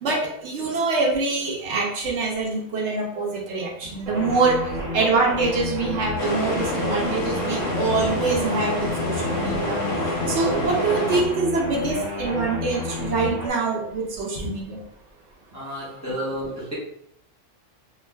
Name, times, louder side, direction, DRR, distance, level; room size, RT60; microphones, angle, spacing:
voice 1, 0.0-4.6 4.9-9.8 10.3-14.8 16.2-16.3, right 3 dB, 70° right, -1 dB, 0.9 m, -24 dB
sound 1, 4.1-13.5, left 1 dB, 85° right, 1.2 m, -31 dB
sound 2, 6.2-11.2, left 1 dB, 55° left, 0.7 m, -28 dB
voice 2, 15.5-16.7, equal, 15° left, -7 dB, 0.7 m, -32 dB
2.4 x 2.3 x 3.2 m, 0.70 s
omnidirectional pair, 1.3 m